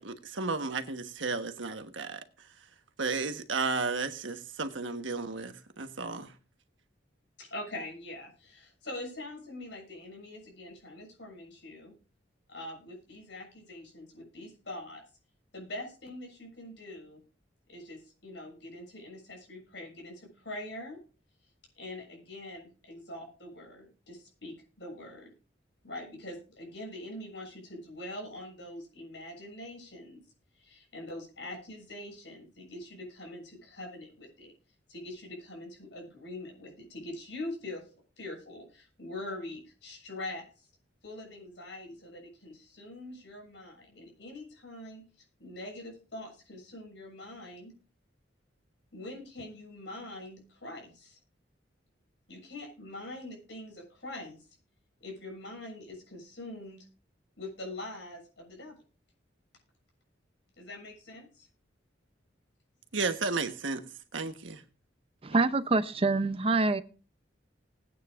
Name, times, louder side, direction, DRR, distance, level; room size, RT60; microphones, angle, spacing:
voice 1, 0.0-2.2 3.0-6.3 62.9-63.8 64.1-64.6, right 4 dB, 85° right, 1.3 m, -33 dB
voice 2, 7.4-11.9 12.5-15.0 15.5-17.2 17.7-21.0 21.8-25.3 25.8-30.2 30.6-34.5 34.9-37.8 38.2-40.7 41.0-45.0 45.4-47.7 48.9-51.2 52.3-54.4 55.0-56.9 57.4-58.8 60.6-61.5 65.3-65.5, left 1 dB, 70° left, 6.9 m, -43 dB
voice 3, 65.2-66.8, right 3 dB, 30° right, 0.6 m, -26 dB
20.0 x 9.2 x 2.5 m
head